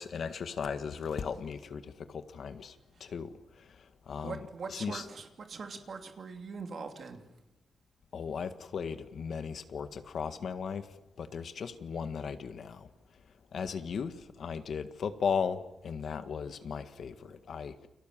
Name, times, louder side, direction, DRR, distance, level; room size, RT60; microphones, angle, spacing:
voice 1, 0.0-1.8 2.1-2.7 3.0-3.3 4.1-5.1 8.1-10.8 11.2-12.9 13.5-14.1 14.4-15.6 15.8-17.7, left 6 dB, 55° left, 1.7 m, -36 dB
voice 2, 4.2-7.2, right 4 dB, 45° right, 2.9 m, -42 dB
30.0 x 24.0 x 7.5 m
wide cardioid pair, 180°, 0 cm